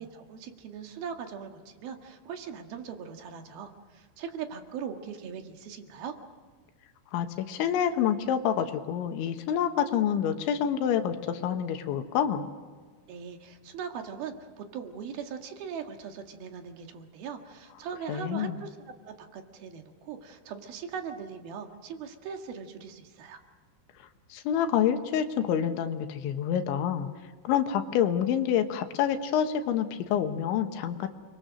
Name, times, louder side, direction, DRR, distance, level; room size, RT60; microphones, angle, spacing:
voice 1, 0.0-6.2 13.1-18.8 19.1-23.4, right 7 dB, 60° right, 4 dB, 3.4 m, -40 dB
voice 2, 7.1-12.5 18.1-18.6 24.3-27.1 27.5-31.1, left 9 dB, 90° left, 7 dB, 3.7 m, -27 dB
29.5 x 23.5 x 6.4 m, 1.5 s
omnidirectional pair, 5.2 m